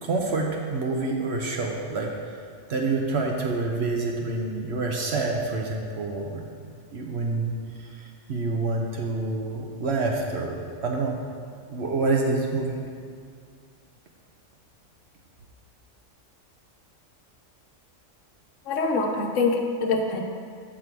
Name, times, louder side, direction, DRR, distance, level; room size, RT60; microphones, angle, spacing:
voice 1, 0.0-2.1 2.7-6.4 6.9-7.5 8.3-11.2 11.7-12.7, right 3 dB, 60° right, 1 dB, 1.0 m, -27 dB
voice 2, 18.7-20.2, left 3 dB, 80° left, 3 dB, 1.1 m, -24 dB
8.3 x 5.9 x 4.6 m, 2.2 s
omnidirectional pair, 1.3 m